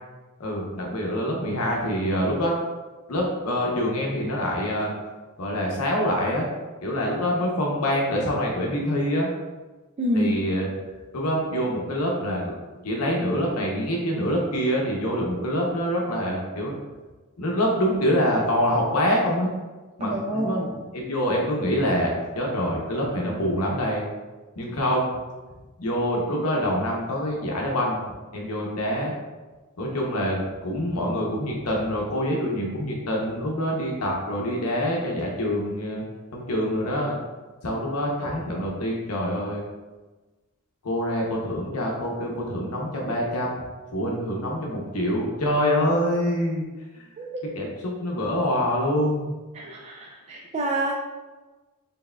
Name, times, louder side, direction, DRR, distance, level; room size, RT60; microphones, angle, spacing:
voice 1, 0.4-2.6 3.1-4.9 5.4-6.5 6.8-9.3 10.1-10.7 11.1-12.5 12.8-16.8 17.4-19.5 20.0-24.1 24.6-25.1 25.8-28.0 28.3-29.1 29.8-36.0 36.3-37.2 37.6-39.6 40.8-43.6 43.9-46.6 46.9-47.0 47.6-49.3, equal, 85° left, -1 dB, 0.7 m, -25 dB
voice 2, 10.0-10.3 20.0-20.6 47.2-47.5 49.5-50.9, right 1 dB, 30° right, -2 dB, 0.3 m, -27 dB
4.5 x 3.4 x 2.2 m, 1.2 s
head